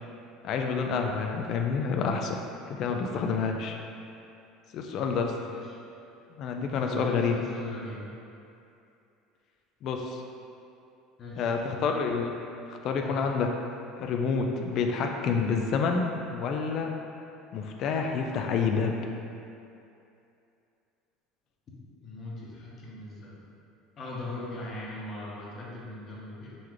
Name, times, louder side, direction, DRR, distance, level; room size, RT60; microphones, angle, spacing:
voice 1, 0.4-2.4 2.7-3.8 4.7-5.3 6.4-7.4 9.8-10.2 11.4-12.3 12.7-13.5 14.0-16.9 17.5-18.9, left 5 dB, 50° left, 3 dB, 0.3 m, -28 dB
voice 2, 5.3-6.0 6.8-8.1 11.2-11.8 13.0-13.2 21.7-21.8 22.0-23.4 24.0-26.6, left 2 dB, 35° left, -5 dB, 0.9 m, -40 dB
3.8 x 3.2 x 3.1 m, 2.7 s
supercardioid pair, 125°, 0 cm